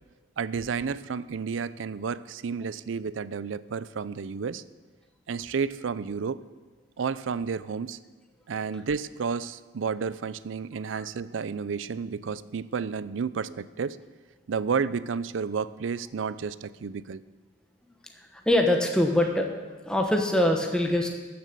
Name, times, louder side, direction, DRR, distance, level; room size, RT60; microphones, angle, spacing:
voice 1, 0.4-4.6 5.3-6.4 7.0-8.0 8.5-14.0 14.5-17.2, right 5 dB, 90° right, 17 dB, 0.4 m, -31 dB
voice 2, 18.3-19.6 19.9-21.1, left 1 dB, 5° left, 2 dB, 1.0 m, -23 dB
14.0 x 7.0 x 6.7 m, 1.3 s
head